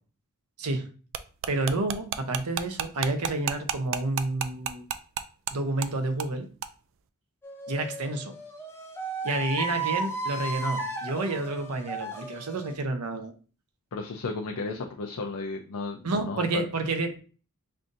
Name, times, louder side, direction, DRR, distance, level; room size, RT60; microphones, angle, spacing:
sound 1, 1.1-5.5 5.8-5.9 6.2-6.3 6.6-6.7, right 8 dB, 60° right, 0.3 m, -31 dB
voice 1, 1.5-4.8 5.5-6.5 7.7-8.3 9.2-13.3 16.0-17.2, right 2 dB, 85° right, 6 dB, 0.7 m, -29 dB
sound 2, 7.4-12.7, right 2 dB, 10° left, 0.5 m, -34 dB
voice 2, 13.9-16.7, left 3 dB, 80° left, 1 dB, 0.5 m, -34 dB
5.5 x 2.6 x 2.5 m, 0.38 s
head